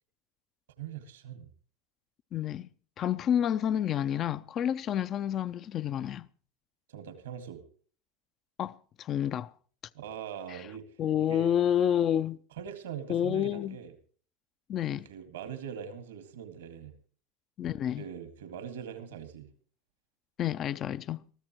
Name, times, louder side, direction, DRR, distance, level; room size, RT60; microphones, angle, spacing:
voice 1, 0.8-1.5 6.9-7.6 9.9-10.9 11.2-11.6 12.6-13.9 15.1-16.9 18.0-19.5, right 8 dB, 80° right, 2.0 m, -42 dB
voice 2, 2.3-2.7 3.0-6.3 8.6-9.5 10.5-10.7 11.0-12.4 13.1-13.8 14.7-15.1 17.6-18.0 20.4-21.2, left 10 dB, 40° left, 0.5 m, -29 dB
22.0 x 14.0 x 3.1 m
hypercardioid pair, 90°, 0 cm